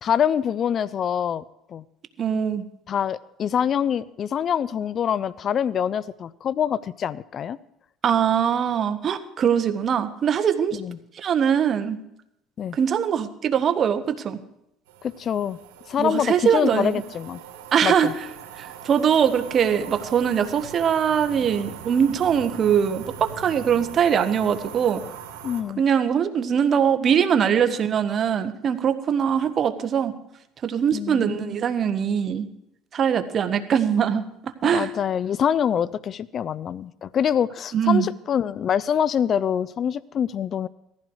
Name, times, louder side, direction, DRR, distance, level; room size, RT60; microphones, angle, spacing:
voice 1, 0.0-1.4 1.7-1.8 2.9-7.6 10.7-11.0 12.6-12.8 15.0-15.6 15.9-17.4 17.8-18.1 25.4-25.8 30.9-31.6 34.6-40.7, left 8 dB, 45° left, 19 dB, 0.6 m, -25 dB
voice 2, 2.2-2.6 8.0-10.8 11.2-12.0 12.8-14.4 16.0-16.9 17.7-18.1 18.6-25.0 25.8-30.1 30.6-32.5 32.9-34.9 37.7-38.1, right 8 dB, 45° right, 9 dB, 1.6 m, -22 dB
sound 1, 14.9-25.6, right 8 dB, 90° right, 2.6 m, -41 dB
18.5 x 15.0 x 4.9 m, 0.79 s
supercardioid pair, 90°, 0 cm